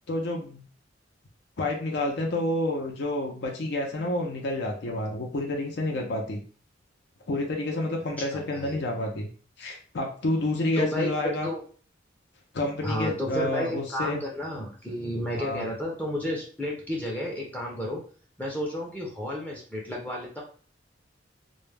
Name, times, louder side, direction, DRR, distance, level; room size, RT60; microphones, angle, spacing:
voice 1, 0.1-0.6 1.6-6.4 7.3-9.3 9.6-11.5 12.5-14.2 15.4-15.7, left 1 dB, 60° left, 1 dB, 0.5 m, -29 dB
voice 2, 8.2-8.8 10.8-11.6 12.8-18.0 18.4-20.4, equal, 10° left, -3 dB, 0.5 m, -32 dB
2.2 x 2.0 x 3.2 m, 0.42 s
head